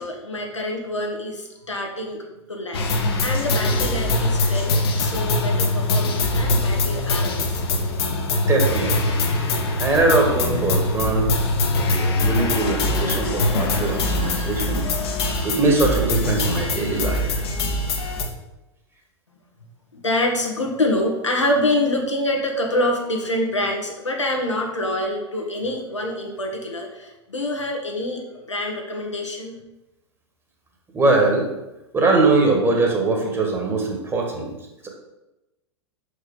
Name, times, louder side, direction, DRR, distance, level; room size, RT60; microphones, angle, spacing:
voice 1, 0.0-2.9 3.2-7.6 19.9-28.2 28.5-29.6, left 1 dB, 80° left, 1 dB, 1.4 m, -26 dB
sound 1, 2.7-18.2, left 2 dB, 55° left, 1.3 m, -22 dB
voice 2, 8.5-9.2 9.8-11.3 11.7-14.8 15.4-17.4 30.9-31.5 31.9-34.5 34.8-34.9, right 3 dB, 15° right, 1 dB, 1.6 m, -21 dB
6.0 x 5.1 x 5.1 m, 0.98 s
figure-of-eight pair, 95°, 15 cm